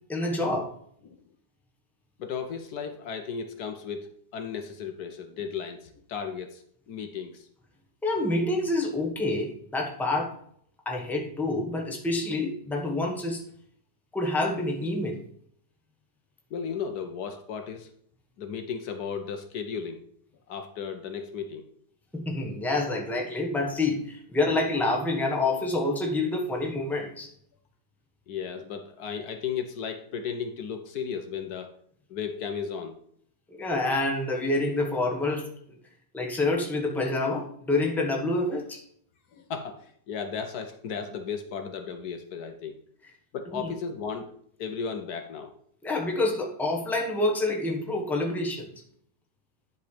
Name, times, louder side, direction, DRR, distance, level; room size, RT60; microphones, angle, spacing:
voice 1, 0.1-0.7 8.0-10.3 10.8-13.4 14.1-15.2 22.1-27.3 33.5-35.5 36.1-38.8 43.6-43.7 45.8-48.7, left 2 dB, ahead, 0 dB, 1.1 m, -27 dB
voice 2, 2.2-7.5 16.5-17.9 18.4-20.0 20.5-21.6 28.3-31.7 32.1-33.0 39.3-42.8 43.3-44.3 44.6-45.5, left 6 dB, 70° left, 7 dB, 1.2 m, -35 dB
10.5 x 4.2 x 5.0 m, 0.64 s
omnidirectional pair, 1.8 m